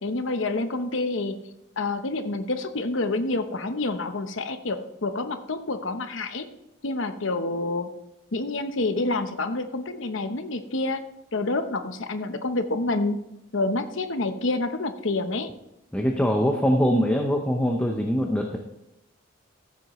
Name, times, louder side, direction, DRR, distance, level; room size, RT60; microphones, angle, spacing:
voice 1, 0.0-1.4 1.8-6.5 6.8-7.9 8.3-11.0 11.3-13.2 13.5-15.5, left 2 dB, 70° left, 8 dB, 0.9 m, -28 dB
voice 2, 15.9-18.6, equal, 5° left, 2 dB, 0.7 m, -23 dB
14.5 x 7.8 x 3.1 m, 0.88 s
head